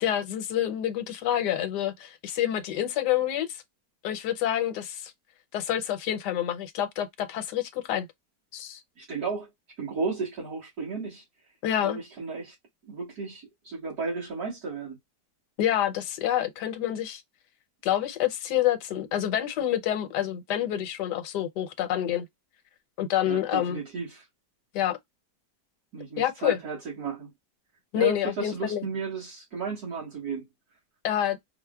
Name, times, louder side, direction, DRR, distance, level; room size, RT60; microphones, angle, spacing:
voice 1, 0.0-3.6 4.0-5.1 5.5-8.1 8.5-8.8 11.6-12.0 15.6-17.2 17.8-22.2 23.0-23.8 24.7-25.0 26.2-26.6 27.9-28.8 31.0-31.4, left 11 dB, 80° left, 1.2 m, -27 dB
voice 2, 9.0-9.5 9.8-11.2 11.8-12.6 12.9-15.0 23.3-24.3 25.9-27.3 27.9-30.5, right 4 dB, 60° right, 2.0 m, -34 dB
4.6 x 2.1 x 2.2 m
omnidirectional pair, 1.8 m